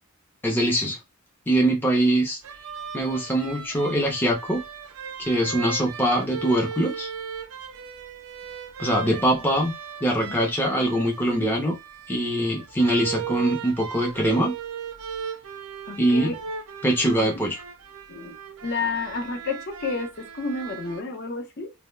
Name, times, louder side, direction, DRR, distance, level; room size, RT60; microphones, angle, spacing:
voice 1, 0.4-1.0 1.5-2.4 2.9-4.6 5.2-7.1 8.8-9.7 10.0-11.8 12.1-14.6 16.0-16.3 16.8-17.6, right 1 dB, 10° left, 0.5 m, -23 dB
sound 1, 2.4-21.0, right 7 dB, 75° right, 0.5 m, -38 dB
voice 2, 9.0-9.4 10.2-10.3 15.9-16.3 17.2-17.4 18.1-18.4 18.6-21.7, left 4 dB, 50° left, 0.6 m, -31 dB
2.2 x 2.0 x 3.1 m
head